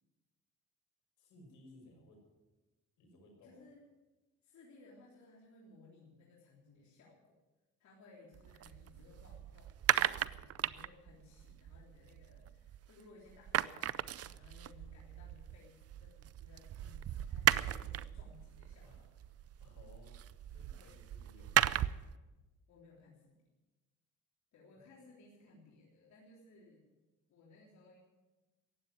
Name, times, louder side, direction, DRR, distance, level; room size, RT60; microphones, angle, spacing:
voice 1, 1.2-2.2 3.0-3.6 18.8-20.2 20.5-21.8, left 2 dB, 90° left, 1 dB, 6.0 m, -61 dB
voice 2, 3.4-3.9 4.4-7.4 7.8-19.1 20.8-21.1 22.7-23.3 24.5-26.9 27.3-28.0, left 3 dB, 65° left, -4 dB, 3.7 m, -61 dB
sound 1, 8.3-13.0 13.3-22.2, right 11 dB, 55° right, 0.6 m, -36 dB
15.5 x 9.4 x 9.1 m, 1.1 s
cardioid pair, 90°, 30 cm